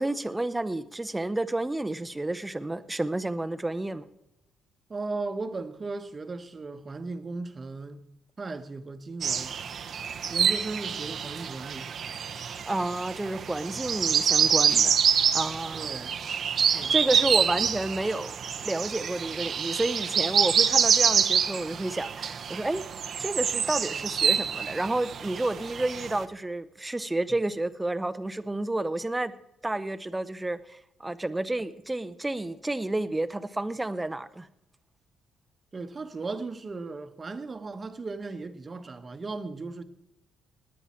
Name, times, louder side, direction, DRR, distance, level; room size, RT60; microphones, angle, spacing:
voice 1, 0.0-4.0 12.7-15.0 15.3-15.9 16.7-22.8 23.2-29.3 29.6-34.5, right 2 dB, 10° right, 0.7 m, -30 dB
voice 2, 4.9-8.0 8.4-9.6 10.3-11.9 15.7-16.2 16.6-16.9 35.7-39.8, right 3 dB, 30° right, 1.1 m, -36 dB
sound 1, 9.2-26.2, right 7 dB, 55° right, 0.7 m, -26 dB
18.0 x 9.9 x 4.3 m
cardioid pair, 105°, 0 cm